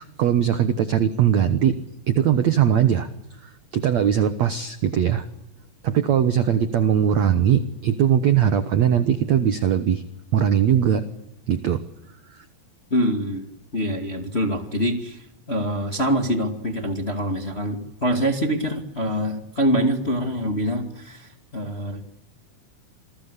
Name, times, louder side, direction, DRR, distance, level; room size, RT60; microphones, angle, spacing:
voice 1, 0.0-1.8 2.1-3.1 3.4-5.2 5.8-10.0 10.3-11.0 11.5-11.8 12.3-12.4, right 9 dB, 70° right, 10 dB, 1.7 m, -20 dB
voice 2, 12.9-13.5 13.7-22.0, equal, 25° left, 5 dB, 1.5 m, -25 dB
28.0 x 20.5 x 8.4 m, 0.87 s
omnidirectional pair, 4.8 m